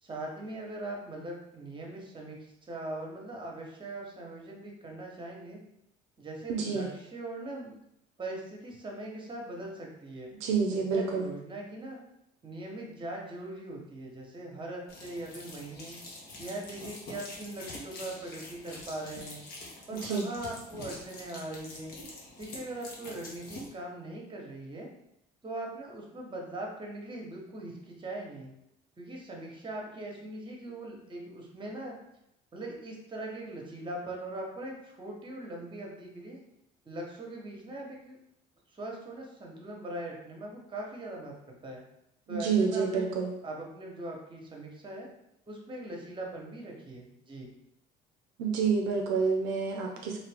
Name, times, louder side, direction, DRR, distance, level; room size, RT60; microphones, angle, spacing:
voice 1, 0.0-5.6 6.2-7.8 8.2-10.3 10.7-12.0 12.4-16.0 16.4-19.4 19.9-21.9 22.4-24.9 25.4-28.5 29.0-32.0 32.5-36.4 36.9-38.2 38.7-41.8 42.3-43.2 43.4-45.1 45.5-47.5, right 1 dB, 25° right, 0 dB, 1.0 m, -41 dB
voice 2, 6.5-6.9 10.4-11.3 20.1-20.2 42.3-43.3 48.4-50.2, right 5 dB, 85° right, 1 dB, 0.5 m, -28 dB
sound 1, 14.9-23.7, left 1 dB, 65° left, 1.0 m, -45 dB
2.7 x 2.5 x 3.4 m, 0.81 s
supercardioid pair, 90°, 18 cm